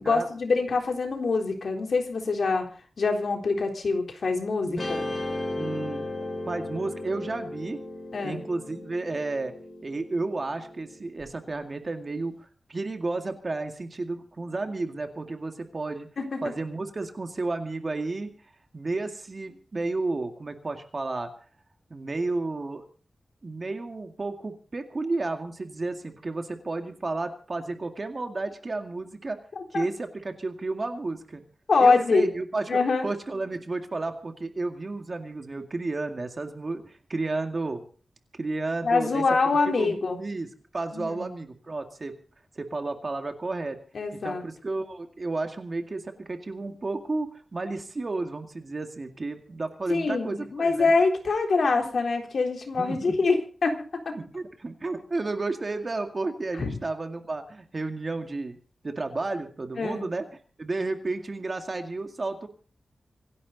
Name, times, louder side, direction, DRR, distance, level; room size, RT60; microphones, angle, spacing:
voice 1, 0.0-2.7 3.0-5.0 8.1-8.4 16.2-16.4 29.7-29.9 31.7-32.3 32.7-33.1 38.8-40.2 40.9-41.3 43.9-44.4 49.9-54.2 56.6-56.8 59.8-60.0, left 4 dB, 65° left, 3 dB, 3.7 m, -25 dB
Guitar, 4.8-11.2, left 1 dB, 35° left, 4.6 m, -36 dB
voice 2, 5.5-6.0 6.5-7.8 8.2-9.5 9.8-16.1 16.4-18.3 18.7-21.3 21.9-22.8 23.4-29.4 29.7-31.4 31.8-37.8 38.3-39.2 39.7-42.2 42.6-43.8 44.2-50.9 52.7-53.1 54.1-58.6 58.8-60.3 60.6-62.5, right 3 dB, 35° right, 5 dB, 2.1 m, -32 dB
26.5 x 11.0 x 4.1 m, 0.40 s
wide cardioid pair, 140°, 0 cm